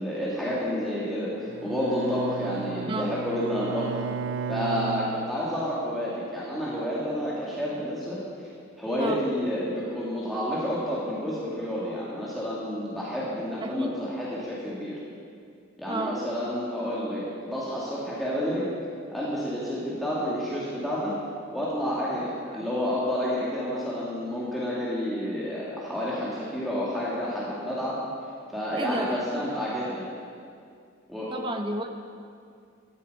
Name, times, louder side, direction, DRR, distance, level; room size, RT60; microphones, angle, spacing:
voice 1, 0.0-4.0 4.5-8.5 8.8-15.0 15.8-18.7 19.1-21.2 21.5-28.0 28.5-30.1 31.1-31.3, equal, ahead, -8 dB, 2.2 m, -30 dB
Bowed string instrument, 1.5-5.8, right 6 dB, 75° right, 0.4 m, -35 dB
voice 2, 13.6-14.1 15.9-16.2 22.5-22.6 28.8-29.5 31.3-31.9, right 1 dB, 25° right, 5 dB, 1.0 m, -32 dB
15.0 x 12.0 x 5.4 m, 2.3 s
head